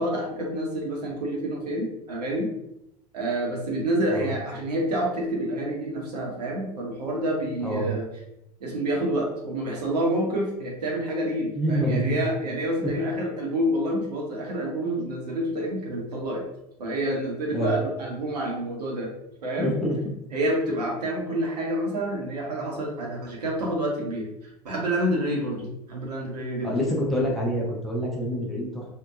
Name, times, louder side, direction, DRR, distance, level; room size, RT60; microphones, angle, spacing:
voice 1, 0.0-2.5 3.1-8.1 8.6-16.4 16.8-19.1 19.4-19.7 20.3-24.3 24.6-26.8, right 1 dB, 75° right, -1 dB, 0.8 m, -28 dB
voice 2, 11.5-12.2 17.5-17.8 19.6-20.0 26.6-28.9, equal, ahead, -4 dB, 0.7 m, -26 dB
2.7 x 2.1 x 2.4 m, 0.84 s
figure-of-eight pair, 80°, 21 cm